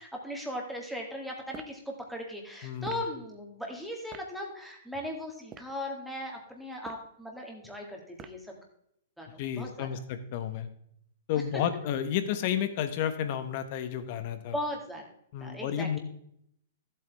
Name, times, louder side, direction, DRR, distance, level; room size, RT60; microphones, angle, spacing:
voice 1, 0.0-8.6 9.2-9.9 14.3-15.0 15.4-15.9, left 1 dB, ahead, 0 dB, 2.3 m, -38 dB
sound 1, 1.5-1.8 2.8-3.1 4.1-4.3 5.4-5.8 6.7-7.1 8.2-8.5, right 8 dB, 25° right, 0.7 m, -47 dB
voice 2, 2.6-3.0 9.4-10.7 11.3-14.6 15.3-16.0, left 9 dB, 45° left, 10 dB, 1.2 m, -31 dB
13.5 x 8.3 x 3.6 m, 0.71 s
hypercardioid pair, 145°, 0 cm